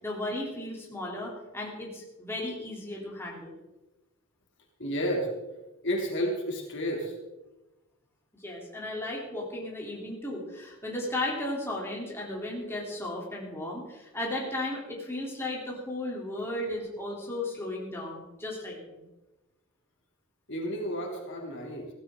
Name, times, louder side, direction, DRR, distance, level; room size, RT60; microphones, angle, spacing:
voice 1, 0.0-3.5 8.4-19.1, left 1 dB, 10° left, -3 dB, 3.3 m, -35 dB
voice 2, 4.8-5.3 5.8-7.1 20.5-21.9, equal, 55° left, 0 dB, 2.9 m, -31 dB
16.0 x 15.0 x 3.8 m, 1.0 s
head